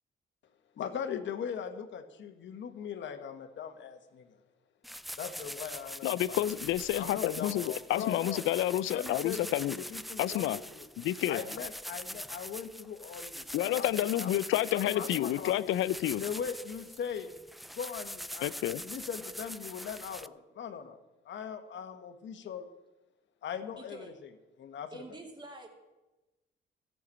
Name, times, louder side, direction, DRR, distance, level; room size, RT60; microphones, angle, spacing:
voice 1, 0.7-4.3 5.2-6.4 7.0-10.8 11.3-14.3 14.7-15.7 16.2-17.3 17.7-21.0 21.2-22.7 23.4-24.1 24.6-25.0, left 7 dB, 65° left, 7 dB, 1.5 m, -40 dB
sound 1, 4.8-20.3, equal, ahead, 0.4 m, -43 dB
voice 2, 6.0-9.8 10.2-10.6 11.0-11.4 13.5-16.2 18.4-18.8, left 13 dB, 85° left, 17 dB, 0.5 m, -30 dB
voice 3, 23.7-24.2 24.9-25.7, right 2 dB, 25° right, 1 dB, 2.6 m, -47 dB
14.5 x 7.1 x 8.5 m, 1.1 s
cardioid pair, 90°, 20 cm